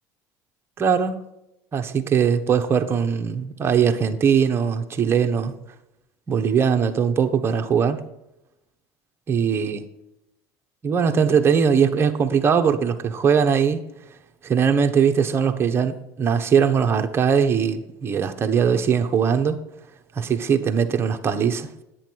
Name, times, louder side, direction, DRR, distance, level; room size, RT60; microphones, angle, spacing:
voice 1, 0.8-1.2 1.7-5.6 6.3-8.0 9.3-9.8 10.8-13.8 14.4-19.6 20.1-21.7, right 7 dB, 30° right, 1.1 m, -20 dB
10.0 x 8.6 x 4.6 m
supercardioid pair, 110°, 8 cm